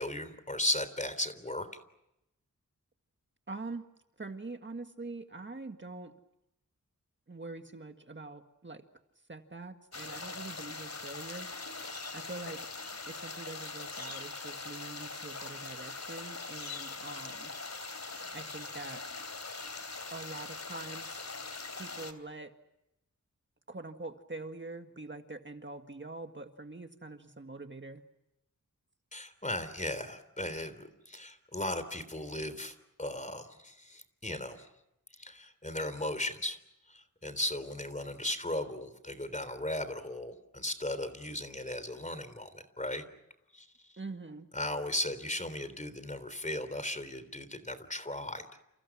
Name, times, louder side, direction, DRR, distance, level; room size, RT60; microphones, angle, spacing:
voice 1, 0.0-1.7 29.1-34.7 35.2-36.6 36.9-43.0 43.5-43.7 44.5-48.4, left 1 dB, 20° left, 12 dB, 3.6 m, -36 dB
voice 2, 3.5-3.9 4.2-6.1 7.3-8.8 9.3-11.5 12.1-12.6 13.1-17.5 18.3-19.0 20.1-21.2 21.8-22.5 23.7-28.0 44.0-44.5, right 3 dB, 35° right, 6 dB, 1.8 m, -44 dB
rushing river loop, 9.9-22.1, left 3 dB, 55° left, 3.2 m, -42 dB
30.0 x 29.5 x 6.1 m, 0.86 s
wide cardioid pair, 90°, 33 cm